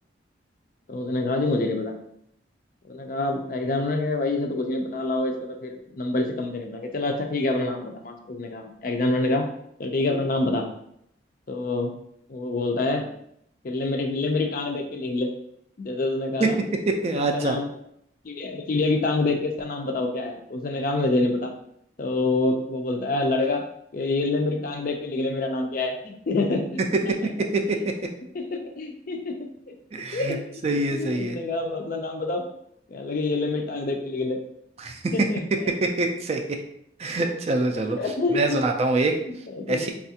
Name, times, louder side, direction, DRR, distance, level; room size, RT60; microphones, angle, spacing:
voice 1, 0.9-1.9 2.9-9.4 9.8-10.7 11.5-11.9 12.3-13.1 13.6-15.3 15.8-16.6 17.1-17.7 18.2-21.5 22.0-23.6 23.9-27.3 27.8-27.9 28.3-29.3 29.7-29.8 30.1-32.4 32.9-34.4 35.1-35.7 38.0-38.6 39.3-39.9, left 2 dB, 45° left, 4 dB, 0.4 m, -27 dB
voice 2, 17.0-17.6 27.7-27.8 29.9-30.4 30.6-31.4 34.8-35.1 35.8-36.4 37.0-38.0 38.3-39.2 39.7-39.9, right 2 dB, 35° right, 4 dB, 0.3 m, -25 dB
4.2 x 2.4 x 2.7 m, 0.73 s
head